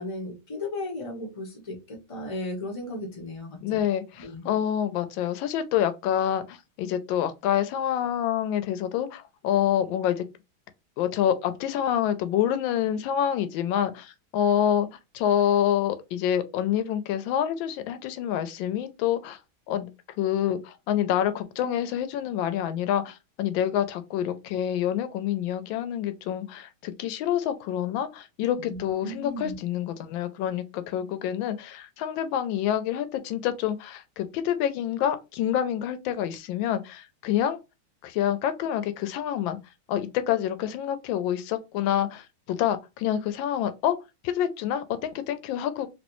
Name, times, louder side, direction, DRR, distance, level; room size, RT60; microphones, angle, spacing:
voice 1, 0.0-3.8 4.2-4.5 28.6-29.5, left 1 dB, 45° left, 0.4 m, -35 dB
voice 2, 3.6-10.3 11.0-19.4 19.7-19.9 20.2-37.6 38.0-39.6 39.9-43.9 44.2-45.9, left 10 dB, 75° left, 1.2 m, -27 dB
3.1 x 2.9 x 3.0 m
omnidirectional pair, 2.3 m